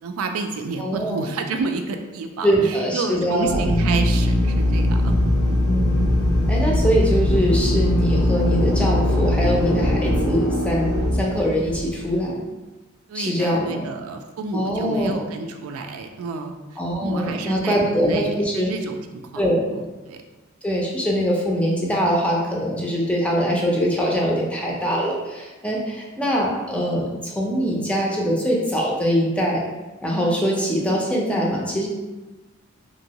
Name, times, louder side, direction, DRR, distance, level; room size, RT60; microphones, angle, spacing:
voice 1, 0.0-5.2 5.4-5.6 13.1-20.2, right 4 dB, 85° right, 5 dB, 0.3 m, -30 dB
voice 2, 0.8-1.3 2.4-3.7 5.6-6.1 6.5-12.4 13.1-13.8 14.5-15.2 16.8-18.7 19.4-19.6 20.6-29.6 30.0-31.9, equal, 5° left, -3 dB, 0.5 m, -23 dB
Drill, 3.4-12.0, left 1 dB, 85° left, 1.0 m, -20 dB
3.0 x 2.6 x 2.8 m, 1.1 s
head